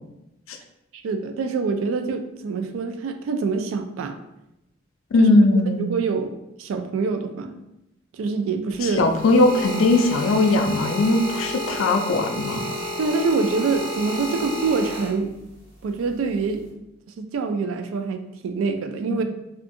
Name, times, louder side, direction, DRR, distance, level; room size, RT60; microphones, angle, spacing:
voice 1, 1.0-4.1 5.2-5.3 5.8-6.3 6.6-7.6 8.1-9.1 13.0-15.3 15.8-16.6 17.2-19.2, right 4 dB, 85° right, 7 dB, 0.3 m, -25 dB
voice 2, 5.1-5.9 8.8-12.7 19.1-19.2, left 2 dB, 80° left, 5 dB, 0.4 m, -19 dB
sound 1, 8.7-15.6 16.4-16.7, left 1 dB, 55° right, 1.2 m, -31 dB
2.6 x 2.4 x 2.5 m, 0.90 s
head